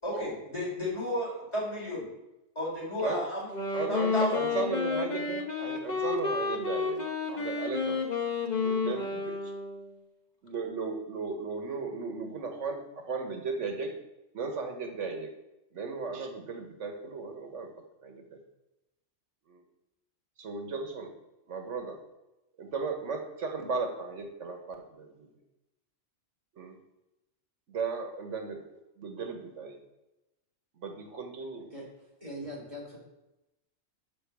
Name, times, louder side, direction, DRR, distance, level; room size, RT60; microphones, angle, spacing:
voice 1, 0.0-2.1 2.6-3.5 3.9-4.5, left 1 dB, 25° left, -6 dB, 3.8 m, -32 dB
Wind instrument woodwind instrument, 3.4-9.9, left 4 dB, 40° left, 1.1 m, -31 dB
voice 2, 3.7-7.0 7.3-8.0 8.6-9.5 10.4-13.9 14.3-15.3 15.7-17.7 18.0-18.4 19.5-19.6 20.4-21.1 21.5-22.0 22.6-25.3 26.6-26.8 27.7-29.8 30.8-31.7, right 4 dB, 85° right, 4 dB, 1.4 m, -36 dB
voice 3, 31.7-33.0, equal, 30° right, -4 dB, 2.8 m, -42 dB
6.9 x 5.5 x 6.8 m, 0.96 s
omnidirectional pair, 1.2 m